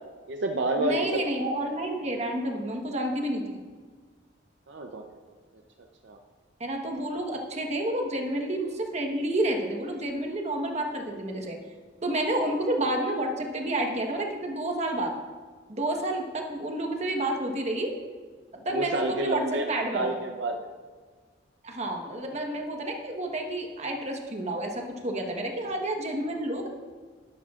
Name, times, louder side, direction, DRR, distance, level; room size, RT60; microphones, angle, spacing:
voice 1, 0.3-1.1 4.7-5.0 6.0-6.2 18.7-20.6, right 2 dB, 70° right, 3 dB, 0.7 m, -29 dB
voice 2, 0.8-3.6 6.6-11.6 12.0-15.1 15.7-17.9 18.6-20.1 21.6-26.7, right 1 dB, 40° right, 2 dB, 1.2 m, -30 dB
11.5 x 11.0 x 2.5 m, 1.5 s
head